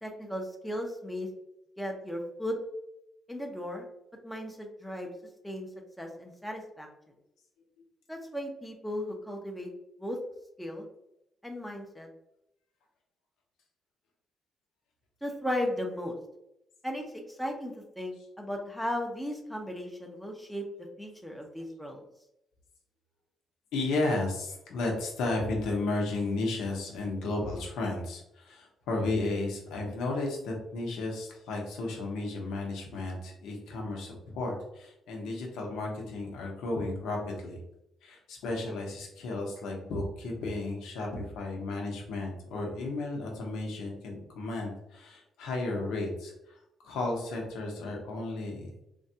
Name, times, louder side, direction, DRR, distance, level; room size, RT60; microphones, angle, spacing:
voice 1, 0.0-1.3 1.8-2.5 3.3-3.9 4.2-5.1 5.4-5.7 6.0-6.9 8.1-9.7 10.0-10.2 10.6-10.8 11.4-12.1 15.2-16.1 16.8-20.6 21.0-22.0, left 1 dB, ahead, 1 dB, 0.6 m, -36 dB
voice 2, 23.7-37.6 38.0-48.7, left 2 dB, 85° left, 0 dB, 0.8 m, -33 dB
3.3 x 2.3 x 2.7 m, 0.84 s
cardioid pair, 90°, 0 cm